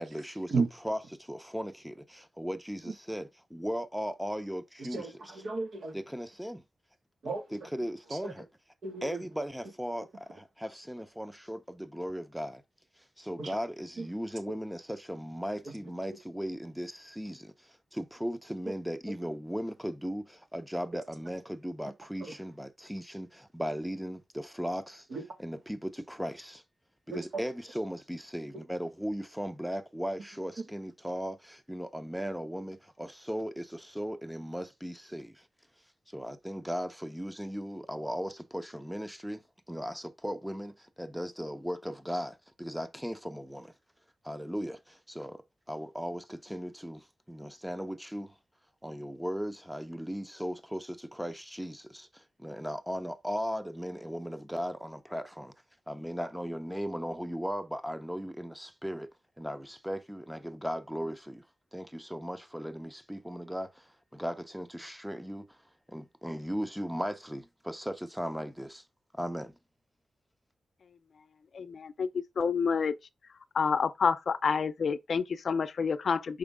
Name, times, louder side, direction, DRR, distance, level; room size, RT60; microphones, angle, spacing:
voice 1, 0.0-0.5 0.8-5.1 5.9-6.6 7.7-8.5 9.0-12.6 13.2-25.1 25.4-26.6 27.1-35.5 36.1-39.4 39.7-43.7 44.2-48.3 48.8-55.5 55.9-59.1 59.4-61.4 61.7-65.6 65.9-68.8 69.1-69.5, equal, 5° right, 0.8 m, -37 dB
voice 2, 4.9-6.0 7.2-7.7 8.1-8.3 8.8-9.3 13.4-13.6 14.0-14.1 22.2-22.3 25.1-25.2 27.1-27.2, right 4 dB, 75° right, 2.0 m, -34 dB
voice 3, 71.5-72.1 72.4-73.0 73.5-76.4, left 5 dB, 70° left, 0.5 m, -28 dB
6.2 x 5.0 x 3.6 m
wide cardioid pair, 95°, 0 cm